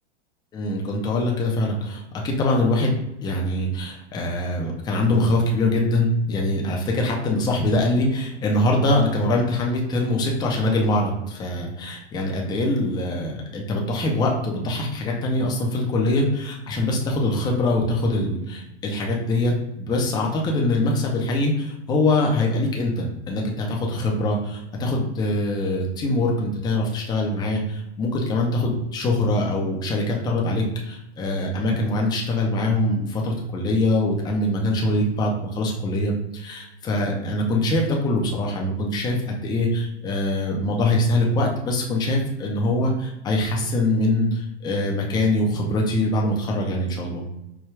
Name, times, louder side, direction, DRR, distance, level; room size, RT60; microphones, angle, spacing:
voice 1, 0.5-47.3, left 1 dB, 10° left, -1 dB, 0.5 m, -23 dB
4.7 x 2.3 x 3.1 m, 0.89 s
hypercardioid pair, 140°, 34 cm